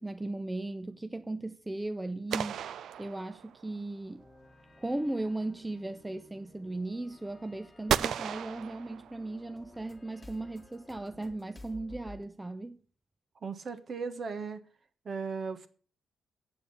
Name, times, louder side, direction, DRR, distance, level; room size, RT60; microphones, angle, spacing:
voice 1, 0.0-4.3 4.8-12.8, right 2 dB, 10° right, 0.5 m, -37 dB
sound 1, 2.3-3.8 7.9-9.5, right 9 dB, 70° right, 0.4 m, -34 dB
sound 2, 4.2-12.2, left 2 dB, 15° left, 1.7 m, -54 dB
voice 2, 13.4-14.6 15.0-15.7, right 5 dB, 40° right, 1.3 m, -36 dB
8.3 x 7.6 x 8.4 m
cardioid pair, 135°, 0 cm